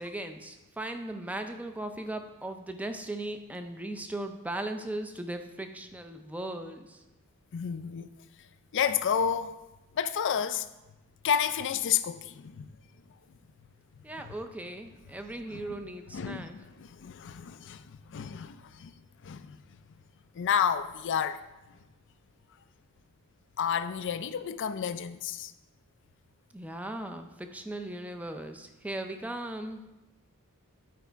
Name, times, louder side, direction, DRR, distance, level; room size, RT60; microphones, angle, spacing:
voice 1, 0.0-7.0 14.0-16.6 26.5-29.8, right 1 dB, 5° right, 0.5 m, -38 dB
voice 2, 7.5-8.1 8.7-9.7 9.9-10.7 11.2-12.7 14.2-14.3 15.5-15.6 16.1-18.9 19.2-19.6 20.3-21.4 23.6-25.5, left 8 dB, 55° left, 0.4 m, -30 dB
9.4 x 4.9 x 4.5 m
head